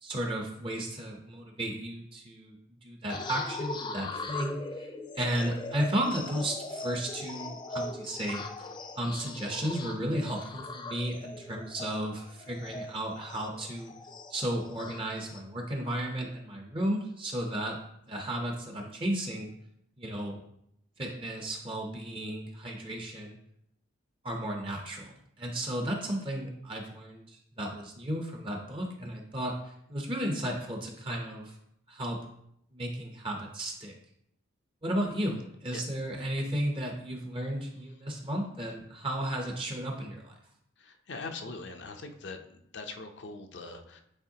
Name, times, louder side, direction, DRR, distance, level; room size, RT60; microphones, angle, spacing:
voice 1, 0.0-2.6 2.8-4.9 5.1-8.4 9.0-13.9 14.3-17.8 18.1-19.5 20.0-20.4 21.0-23.4 24.2-31.6 31.9-32.2 32.7-33.9 34.8-40.3, right 1 dB, 25° right, 2 dB, 0.7 m, -34 dB
sound 1, 3.1-15.4, left 2 dB, 25° left, 0.3 m, -40 dB
voice 2, 40.8-42.4 42.7-44.0, left 3 dB, 65° left, 5 dB, 0.6 m, -41 dB
8.8 x 4.3 x 2.8 m, 0.75 s
head